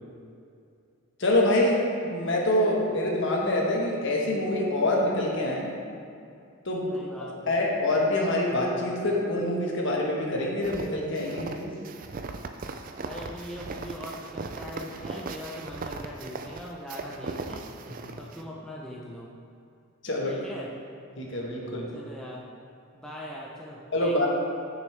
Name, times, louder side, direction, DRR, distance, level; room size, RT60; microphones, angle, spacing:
voice 1, 1.2-1.8 2.1-5.7 6.6-6.9 7.5-11.7 20.0-20.4 21.2-21.9 23.9-24.3, left 1 dB, 55° left, -2 dB, 1.3 m, -25 dB
voice 2, 6.9-7.5 12.6-12.7 13.1-17.6 18.2-19.3 20.2-20.7 21.9-22.4 22.9-24.3, equal, 5° left, -5 dB, 0.6 m, -41 dB
sound 1, 10.6-18.4, right 3 dB, 40° right, 0.4 m, -38 dB
10.0 x 6.3 x 3.3 m, 2.5 s
head